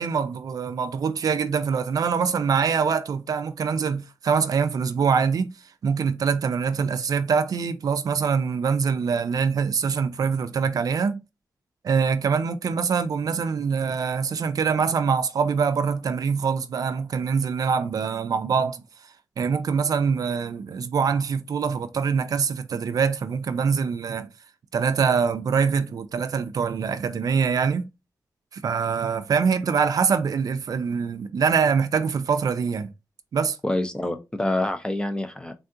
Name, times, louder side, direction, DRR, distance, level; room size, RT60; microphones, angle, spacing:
voice 1, 0.0-11.2 11.8-24.3 24.7-27.9 28.5-32.9 33.3-33.6, right 6 dB, 60° right, 0.4 m, -24 dB
voice 2, 33.6-35.6, left 1 dB, 10° left, 0.4 m, -26 dB
3.5 x 2.3 x 2.6 m
wide cardioid pair, 125°, 7 cm